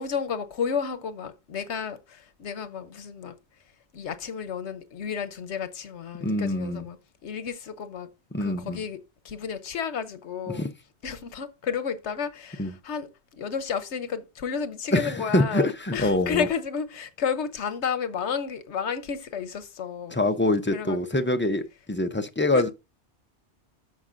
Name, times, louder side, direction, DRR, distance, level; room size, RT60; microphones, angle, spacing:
voice 1, 0.0-3.4 3.9-7.0 7.2-8.1 8.4-10.7 11.0-20.2 20.7-21.0 22.5-22.7, left 6 dB, 85° left, 1.2 m, -32 dB
voice 2, 6.2-6.9 8.3-8.8 10.5-10.7 12.6-12.7 14.9-16.5 20.1-22.7, left 1 dB, 15° left, 0.4 m, -25 dB
13.5 x 4.9 x 2.6 m
omnidirectional pair, 1.1 m